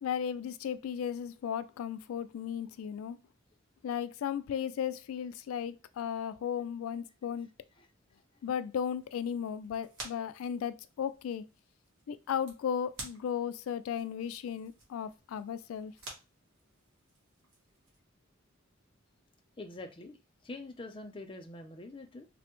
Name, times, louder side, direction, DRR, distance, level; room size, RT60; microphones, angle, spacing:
voice 1, 0.0-3.2 3.8-7.5 8.4-11.5 12.1-15.9, left 8 dB, 90° left, 0.3 m, -35 dB
sound 1, 8.4-18.0, right 2 dB, 70° right, 1.2 m, -52 dB
voice 2, 19.6-22.3, left 2 dB, 25° left, 0.4 m, -45 dB
3.2 x 2.0 x 3.0 m
head